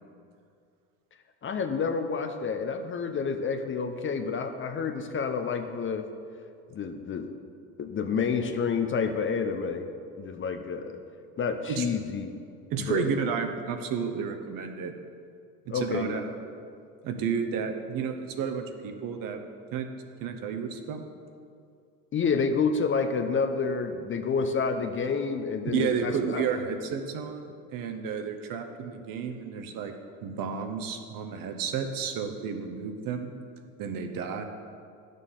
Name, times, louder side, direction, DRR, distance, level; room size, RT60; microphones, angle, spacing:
voice 1, 1.4-6.1 6.7-7.3 7.8-9.9 10.2-11.0 11.4-12.4 12.8-13.1 15.7-16.2 22.1-26.4, left 5 dB, 30° left, 7 dB, 0.7 m, -29 dB
voice 2, 12.7-14.9 15.6-16.3 17.0-19.4 19.7-19.9 20.2-21.1 25.7-29.9 30.2-33.3 33.8-34.4, right 6 dB, 50° right, 6 dB, 1.0 m, -31 dB
10.5 x 6.6 x 3.8 m, 2.3 s
hypercardioid pair, 85°, 42 cm